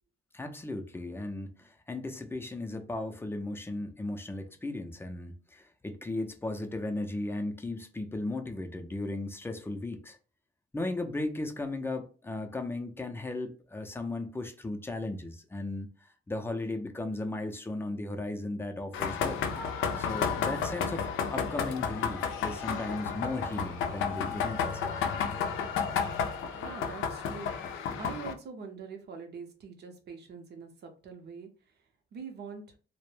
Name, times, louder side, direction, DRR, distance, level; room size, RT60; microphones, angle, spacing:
voice 1, 0.3-10.2 10.7-15.9 16.3-19.4 20.0-25.0, left 2 dB, 10° left, 0.4 m, -36 dB
sound 1, 18.9-28.3, left 6 dB, 85° left, 0.4 m, -32 dB
voice 2, 26.4-31.8 32.1-32.6, right 5 dB, 55° right, 0.6 m, -44 dB
2.1 x 2.1 x 3.1 m
cardioid pair, 90°, 20 cm